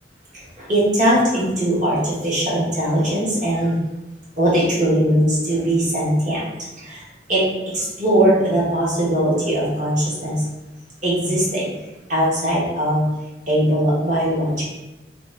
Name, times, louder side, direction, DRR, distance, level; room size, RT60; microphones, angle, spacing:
voice 1, 0.3-3.8 4.4-6.4 6.8-7.0 7.3-7.4 7.7-10.4 11.0-11.7 12.1-13.0 13.5-14.6, right 1 dB, 45° right, -7 dB, 1.2 m, -20 dB
2.9 x 2.4 x 3.2 m, 1.0 s
head